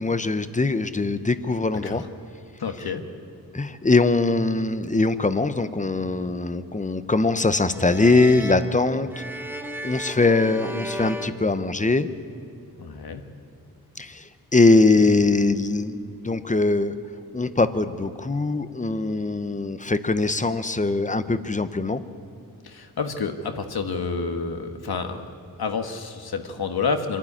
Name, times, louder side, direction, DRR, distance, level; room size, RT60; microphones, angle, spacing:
voice 1, 0.0-2.0 3.5-9.2 9.8-12.1 14.0-16.9 17.3-22.0, left 3 dB, 20° left, 12 dB, 0.8 m, -22 dB
voice 2, 2.6-3.0 12.8-13.2 22.6-25.2 25.6-27.2, left 5 dB, 75° left, 6 dB, 1.6 m, -29 dB
sound 1, 7.7-12.3, equal, 5° right, 1.1 m, -36 dB
25.5 x 12.0 x 9.9 m, 2.4 s
wide cardioid pair, 115°, 38 cm